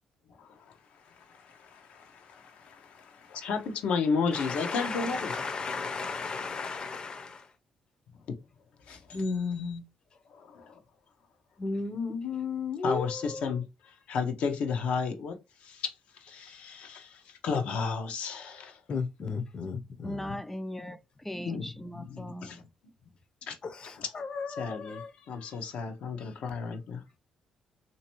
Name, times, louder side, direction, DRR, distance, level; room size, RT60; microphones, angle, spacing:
voice 1, 0.4-0.7 1.0-5.3 8.3-8.4 8.9-9.8 10.3-10.8 12.8-15.9 16.2-18.8 21.4-22.6 23.4-23.5 23.8-24.1 24.6-27.0, left 5 dB, 75° left, 0.9 m, -34 dB
voice 2, 4.3-7.4 9.1-9.8 11.6-13.5 18.9-20.3 23.8-25.1, left 4 dB, 45° left, 0.8 m, -34 dB
voice 3, 20.0-22.6, equal, 10° left, 0.4 m, -39 dB
3.3 x 2.8 x 3.0 m
cardioid pair, 85°, 2 cm